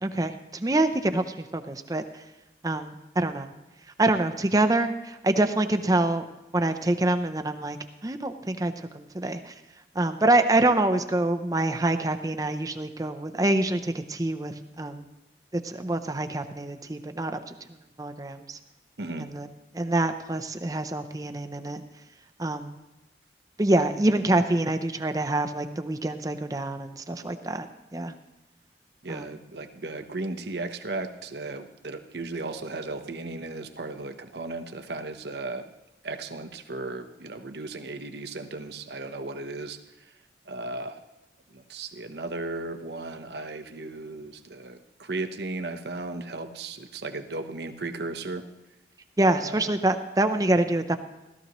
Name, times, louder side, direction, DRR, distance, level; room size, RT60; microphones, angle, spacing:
voice 1, 0.0-2.2 2.6-3.5 4.0-7.8 8.0-9.6 9.9-15.0 15.5-18.6 19.2-19.5 19.7-21.8 22.4-22.8 23.6-27.7 27.9-28.2 29.1-29.4 49.2-51.0, right 2 dB, 20° right, 7 dB, 0.5 m, -26 dB
voice 2, 19.0-19.3 29.0-35.7 36.0-39.8 40.5-41.0 41.5-48.5 49.4-49.7, right 2 dB, 70° right, 7 dB, 0.9 m, -35 dB
16.5 x 13.5 x 3.0 m, 1.0 s
head